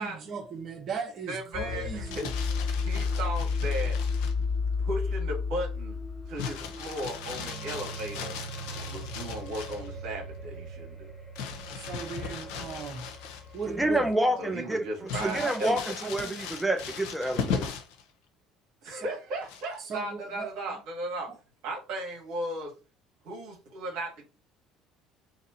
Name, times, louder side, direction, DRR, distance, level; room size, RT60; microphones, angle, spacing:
voice 1, 0.0-2.3 11.7-13.1 13.5-14.4 15.2-16.5 18.8-19.1 19.8-20.5, right 5 dB, 45° right, 1.3 m, -38 dB
voice 2, 1.3-2.2 2.8-4.0 4.8-6.0 6.3-8.3 8.8-11.1 14.4-15.9 18.8-21.3 21.6-22.7 23.2-24.2, right 1 dB, 65° right, 1.6 m, -36 dB
sound 1, 1.5-14.1, left 4 dB, 10° left, 1.6 m, -34 dB
Crumpling crinkling, 1.9-4.4 6.4-9.9 11.4-13.7 14.1-14.2 15.1-18.0 19.4-19.9, left 6 dB, 70° left, 0.8 m, -38 dB
voice 3, 13.8-14.8 15.2-17.7, right 1 dB, 5° right, 0.5 m, -28 dB
2.9 x 2.6 x 4.3 m
hypercardioid pair, 65°, 0 cm